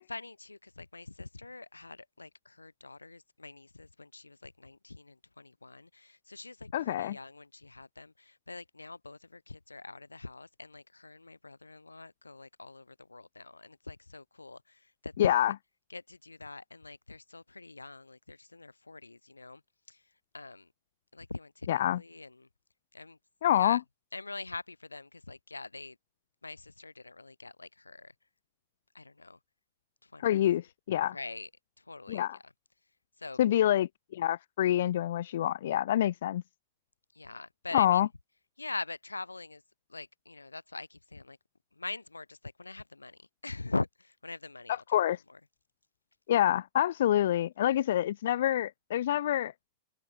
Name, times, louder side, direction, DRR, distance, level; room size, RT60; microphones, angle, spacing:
voice 1, 0.1-15.5 15.9-19.6 19.9-20.0 20.3-20.7 21.1-22.5 22.9-23.2 23.5-23.8 24.1-26.0 26.4-28.1 28.9-29.4 30.1-30.3 31.1-31.5 31.9-32.3 33.2-33.4 37.1-38.0 38.6-39.6 39.9-41.4 41.8-44.8, left 3 dB, 85° left, 2.6 m, -43 dB
voice 2, 6.7-7.2 15.2-15.5 21.7-22.0 23.4-23.8 30.2-31.2 32.1-32.4 33.4-36.4 37.7-38.1 44.7-45.2 46.3-49.5, left 12 dB, 55° left, 0.3 m, -27 dB
open air
figure-of-eight pair, 100°, 0 cm